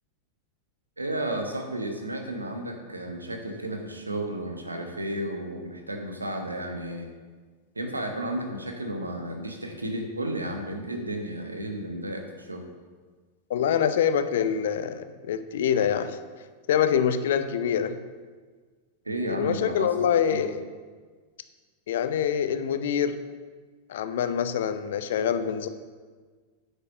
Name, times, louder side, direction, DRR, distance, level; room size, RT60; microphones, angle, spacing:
voice 1, 1.0-7.1 7.7-12.6 19.0-20.4, right 1 dB, 80° right, 3 dB, 1.3 m, -33 dB
voice 2, 13.5-16.2 16.7-18.0 19.2-20.7 21.9-23.2 23.9-25.7, left 8 dB, 60° left, 11 dB, 0.6 m, -25 dB
9.5 x 7.0 x 5.5 m, 1.5 s
figure-of-eight pair, 90°, 0 cm